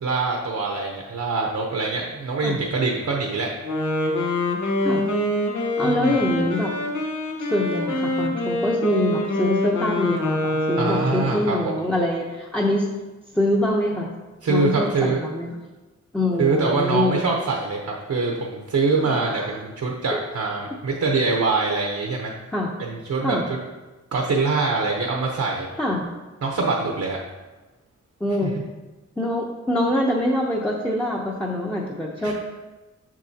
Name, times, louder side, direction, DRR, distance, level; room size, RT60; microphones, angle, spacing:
voice 1, 0.0-3.5 5.8-6.2 10.8-11.5 14.4-15.2 16.4-22.3 22.8-23.6 24.1-25.7 26.4-27.2 32.2-32.3, right 3 dB, 75° right, -1 dB, 0.9 m, -24 dB
Wind instrument woodwind instrument, 3.6-11.6, left 1 dB, 90° left, 1.1 m, -25 dB
voice 2, 4.8-5.1 5.8-6.7 7.4-12.8 13.3-14.1 14.5-15.5 16.1-17.2 19.1-19.5 20.1-20.2 22.5-22.7 23.2-23.4 25.8-26.1 28.2-28.6 29.2-32.3, left 1 dB, 5° left, -2 dB, 0.7 m, -24 dB
7.5 x 5.9 x 2.8 m, 1.2 s
wide cardioid pair, 110°, 29 cm